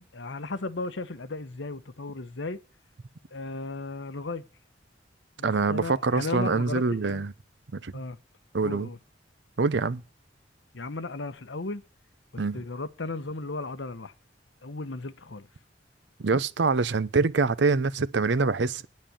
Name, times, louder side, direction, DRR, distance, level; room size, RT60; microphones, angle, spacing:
voice 1, 0.0-2.6 3.3-4.5 5.4-7.2 7.9-8.2 8.6-9.0 10.7-11.8 12.3-14.1 14.6-15.5, left 3 dB, 85° left, 1.0 m, -35 dB
voice 2, 5.4-7.3 7.7-7.9 8.5-8.9 9.6-10.0 12.4-12.6 16.2-18.9, right 4 dB, 70° right, 0.7 m, -25 dB
9.4 x 7.6 x 8.7 m
head